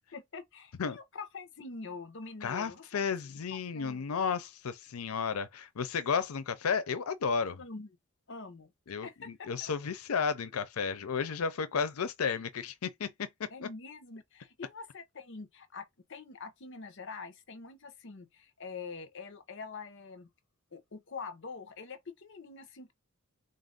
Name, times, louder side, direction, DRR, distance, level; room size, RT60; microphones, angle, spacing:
voice 1, 0.1-2.9 3.7-4.1 7.6-7.9 8.3-8.7 9.0-9.3 9.6-9.7 13.5-20.3 20.7-22.9, left 4 dB, 60° left, 0.8 m, -45 dB
voice 2, 2.4-7.6 8.9-13.7, left 6 dB, 90° left, 0.5 m, -33 dB
3.9 x 2.6 x 3.8 m
head